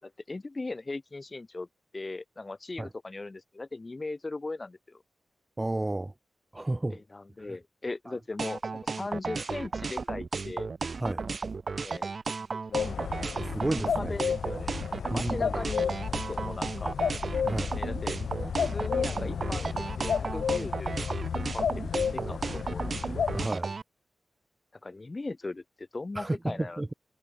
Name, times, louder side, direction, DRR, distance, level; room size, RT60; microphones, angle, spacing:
voice 1, 0.0-1.7 1.9-5.0 6.9-10.7 11.8-12.1 12.7-13.2 13.9-14.8 15.0-17.0 17.7-18.2 18.6-23.0 24.8-26.8, left 3 dB, 30° left, 4.6 m, -39 dB
voice 2, 5.6-6.1 6.5-7.0 11.0-11.2 13.5-14.1 15.1-15.6 17.4-17.8 23.3-23.7 26.1-26.9, right 2 dB, 20° right, 6.4 m, -31 dB
sound 1, 8.4-23.8, right 4 dB, 50° right, 1.6 m, -34 dB
sound 2, 12.7-23.5, left 7 dB, 90° left, 3.5 m, -32 dB
wide cardioid pair, 110°, 0 cm